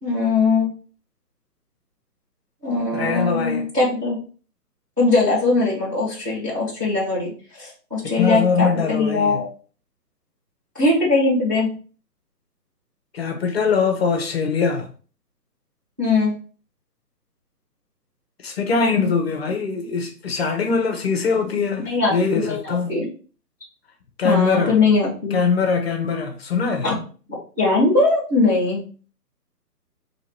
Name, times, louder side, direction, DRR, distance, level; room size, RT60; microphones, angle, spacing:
voice 1, 0.0-0.7 2.6-4.2 5.0-9.5 10.7-11.7 16.0-16.3 21.9-22.2 22.4-23.1 24.2-25.4 26.8-26.9 27.6-28.8, left 3 dB, 15° right, 0.5 m, -20 dB
voice 2, 2.9-3.7 8.0-9.4 13.1-14.9 18.4-23.0 24.2-24.8 25.3-26.9, left 5 dB, 40° left, 0.6 m, -22 dB
2.8 x 2.8 x 4.3 m
hypercardioid pair, 145°, 49 cm